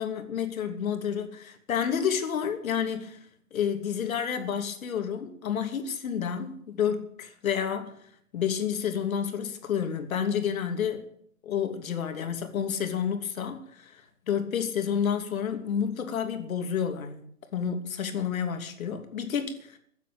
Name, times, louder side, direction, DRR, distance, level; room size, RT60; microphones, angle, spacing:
voice 1, 0.0-8.0 8.3-11.0 11.4-14.0 14.3-19.8, left 8 dB, 65° left, 2.9 m, -30 dB
16.5 x 8.2 x 9.3 m
hypercardioid pair, 140°, 44 cm